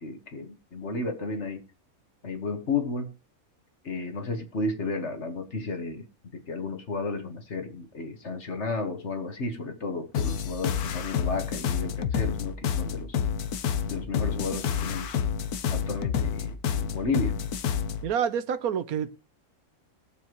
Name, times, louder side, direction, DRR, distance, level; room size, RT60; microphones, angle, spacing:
voice 1, 0.0-1.6 2.2-3.1 3.8-6.1 6.3-13.2 13.9-15.2 15.7-17.4, left 3 dB, 50° left, 1.8 m, -33 dB
sound 1, 10.1-18.1, left 7 dB, 80° left, 1.3 m, -29 dB
voice 2, 18.0-19.1, right 8 dB, 75° right, 1.3 m, -27 dB
20.5 x 7.1 x 3.1 m
omnidirectional pair, 1.6 m